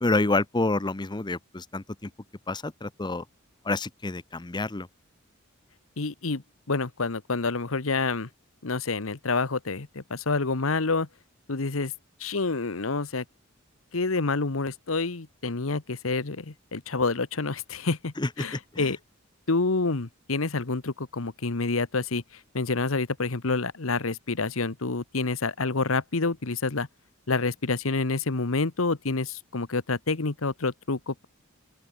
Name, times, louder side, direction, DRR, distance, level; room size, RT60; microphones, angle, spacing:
voice 1, 0.0-1.8 2.5-3.2 3.7-4.9 18.2-18.3 18.8-18.9, left 2 dB, 20° left, 0.8 m, -27 dB
voice 2, 6.0-6.4 6.7-8.3 8.6-11.1 11.5-11.9 12.2-13.2 13.9-19.0 19.5-22.2 22.5-26.9 27.3-31.2, left 3 dB, 85° left, 1.3 m, -28 dB
open air
head